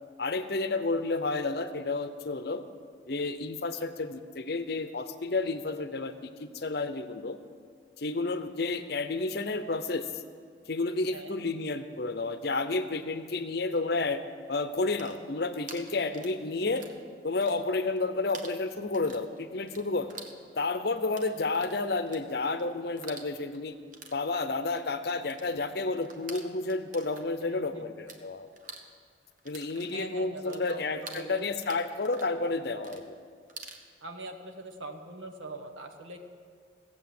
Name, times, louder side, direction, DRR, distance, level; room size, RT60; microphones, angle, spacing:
voice 1, 0.2-2.6 3.1-7.4 8.0-10.2 10.7-14.2 14.5-16.8 17.2-20.1 20.6-23.7 24.1-28.5 29.4-33.1, left 3 dB, 55° left, 10 dB, 0.7 m, -31 dB
sound 1, 15.0-17.0 17.3-18.0 18.3-28.2 28.5-33.8, right 4 dB, 45° right, 1.0 m, -48 dB
voice 2, 27.4-27.9 29.8-31.5 34.0-36.2, right 2 dB, 90° right, 5 dB, 1.3 m, -43 dB
16.5 x 7.7 x 7.7 m, 2.1 s
head